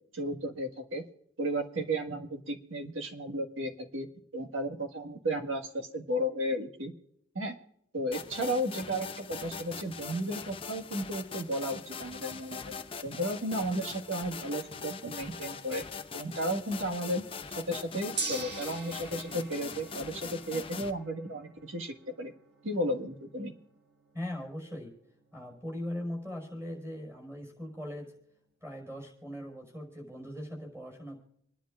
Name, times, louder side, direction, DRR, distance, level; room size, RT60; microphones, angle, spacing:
voice 1, 0.1-1.0 1.4-4.1 4.3-6.9 7.4-7.6 7.9-12.7 13.0-15.8 16.1-17.2 17.6-22.3 22.6-23.5, equal, 80° right, 2 dB, 1.7 m, -34 dB
sound 1, 8.1-20.9, left 5 dB, 25° left, 0.7 m, -42 dB
Gong, 18.2-28.4, right 4 dB, 55° right, 1.7 m, -45 dB
voice 2, 24.1-24.9 25.3-28.1 28.6-31.2, left 1 dB, 15° right, -1 dB, 5.2 m, -40 dB
28.0 x 10.0 x 2.5 m, 0.73 s
head